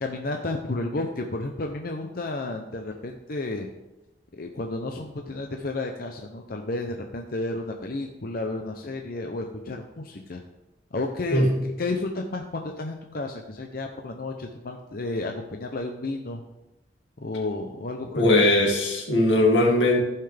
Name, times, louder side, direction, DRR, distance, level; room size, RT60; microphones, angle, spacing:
voice 1, 0.0-3.7 4.4-10.4 10.9-11.5 11.8-16.4 17.2-18.5, left 2 dB, 55° left, 3 dB, 0.7 m, -32 dB
voice 2, 18.2-20.0, left 1 dB, 90° left, -1 dB, 2.3 m, -19 dB
15.0 x 5.8 x 3.5 m, 0.97 s
head